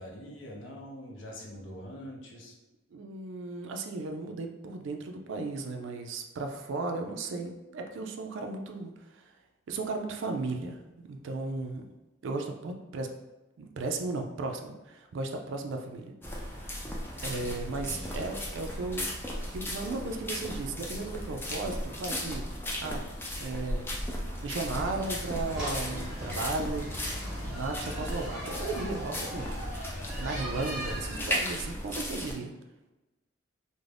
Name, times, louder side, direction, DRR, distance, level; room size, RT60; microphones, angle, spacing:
voice 1, 0.0-2.5 17.6-18.3, equal, 65° left, -1 dB, 0.6 m, -44 dB
voice 2, 2.9-9.3 9.7-10.8 11.1-11.8 12.2-13.1 13.6-16.1 16.4-16.8 17.2-19.2 19.5-22.5 22.8-23.0 23.4-27.0 27.4-32.5, right 3 dB, 65° right, 3 dB, 0.4 m, -35 dB
sound 1, 16.2-32.4, left 1 dB, 10° left, 0.4 m, -36 dB
sound 2, 24.6-31.3, equal, 5° right, 0.8 m, -38 dB
2.5 x 2.1 x 3.2 m, 1.1 s
head